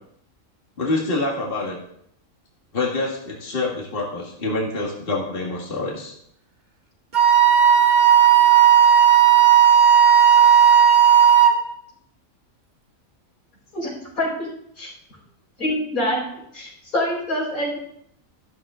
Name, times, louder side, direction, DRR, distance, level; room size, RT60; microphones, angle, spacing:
voice 1, 0.8-1.8 2.7-6.1, left 2 dB, 40° left, -2 dB, 2.0 m, -26 dB
Wind instrument woodwind instrument, 7.1-11.6, right 9 dB, 35° right, 1.6 m, -13 dB
voice 2, 14.2-14.5 14.8-14.9 15.6-16.2 16.5-17.8, left 1 dB, 85° left, -3 dB, 5.2 m, -25 dB
12.5 x 12.5 x 3.7 m, 0.71 s
omnidirectional pair, 1.4 m